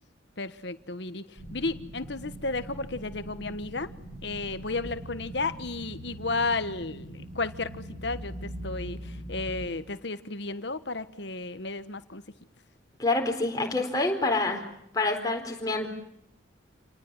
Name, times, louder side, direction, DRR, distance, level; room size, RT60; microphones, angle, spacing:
voice 1, 0.4-1.2 1.5-3.9 4.2-12.2, left 3 dB, 60° left, 12 dB, 1.4 m, -33 dB
sound 1, 1.4-9.7, equal, 80° right, 6.1 m, -41 dB
voice 2, 13.0-14.6 14.9-15.9, left 2 dB, 20° left, 2 dB, 4.3 m, -27 dB
29.0 x 19.0 x 9.8 m, 0.78 s
head